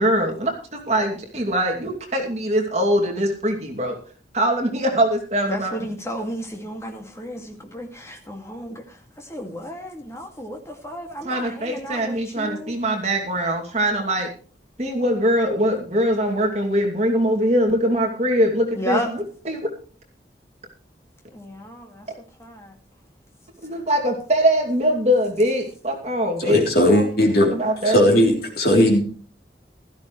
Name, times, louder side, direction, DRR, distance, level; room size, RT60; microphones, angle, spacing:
voice 1, 0.0-4.0 4.3-5.7 11.2-14.3 14.8-19.7 23.6-27.1 27.5-28.2, equal, 35° right, 2.7 m, -22 dB
voice 2, 5.5-12.8 18.7-19.1 21.3-22.1 22.4-22.7, equal, 15° left, 2.3 m, -33 dB
voice 3, 26.4-27.5 27.9-29.0, left 1 dB, 55° left, 3.4 m, -17 dB
16.0 x 13.5 x 3.2 m
head